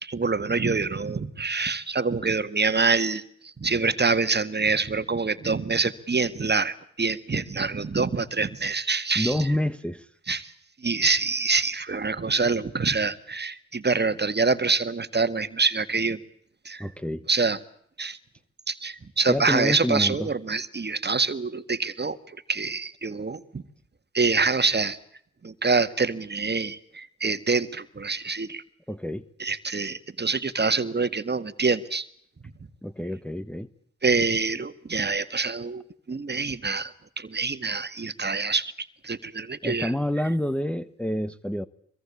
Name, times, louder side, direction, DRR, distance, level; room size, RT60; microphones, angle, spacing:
voice 1, 0.0-3.2 3.6-9.4 10.3-10.5 10.8-16.2 16.7-16.8 17.3-17.6 18.0-18.2 18.7-22.2 22.5-23.6 24.1-25.0 25.4-28.6 29.4-32.1 34.0-35.8 36.1-39.9, right 4 dB, 35° right, 1.9 m, -26 dB
voice 2, 9.1-10.1 16.8-17.2 19.3-20.3 28.9-29.2 32.8-33.7 39.6-41.7, left 1 dB, 5° left, 1.4 m, -28 dB
24.0 x 23.0 x 8.6 m
supercardioid pair, 50°, 31 cm